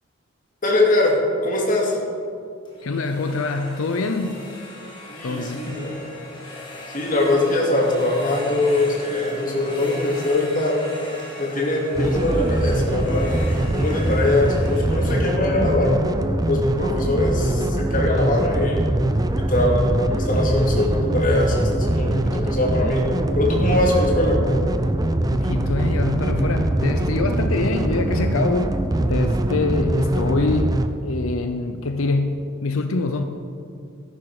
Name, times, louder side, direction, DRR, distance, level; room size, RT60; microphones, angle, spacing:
voice 1, 0.6-2.0 5.1-5.9 6.9-10.8 11.4-13.3 13.7-15.9 16.5-18.8 19.4-23.0 23.4-24.4, left 2 dB, 40° left, -1 dB, 2.4 m, -22 dB
sound 1, 2.7-16.5, left 1 dB, 25° left, 2.3 m, -38 dB
voice 2, 2.8-4.4 5.2-5.8 25.3-28.7 29.0-30.8 31.0-33.2, left 3 dB, 85° left, 7 dB, 0.7 m, -25 dB
sound 2, 12.0-30.9, right 1 dB, 20° right, 0.5 m, -22 dB
13.5 x 11.0 x 4.9 m, 2.4 s
head